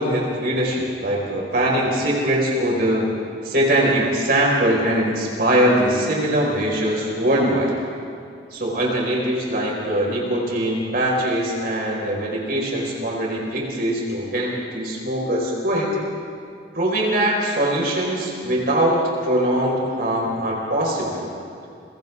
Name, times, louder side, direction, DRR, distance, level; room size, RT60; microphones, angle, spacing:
voice 1, 0.0-3.0 3.4-7.7 8.5-15.9 16.7-21.3, right 1 dB, 55° right, -3 dB, 5.1 m, -22 dB
30.0 x 24.0 x 3.7 m, 2.4 s
head